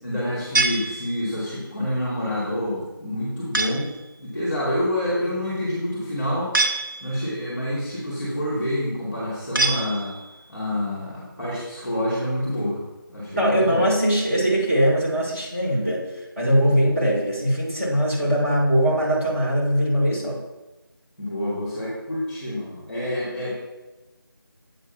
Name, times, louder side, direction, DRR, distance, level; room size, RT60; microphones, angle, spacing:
voice 1, 0.0-3.9 4.2-6.5 7.0-10.2 10.5-12.8 13.1-13.8 21.2-23.5, left 1 dB, 5° left, -7 dB, 1.7 m, -27 dB
sound 1, 0.6-1.5 3.5-4.0 6.5-7.4 9.6-10.4, right 2 dB, 60° right, 1.0 m, -25 dB
voice 2, 13.4-16.0 16.4-20.3, equal, 35° right, -7 dB, 2.7 m, -21 dB
8.0 x 3.7 x 5.7 m, 1.1 s
figure-of-eight pair, 170°, 12 cm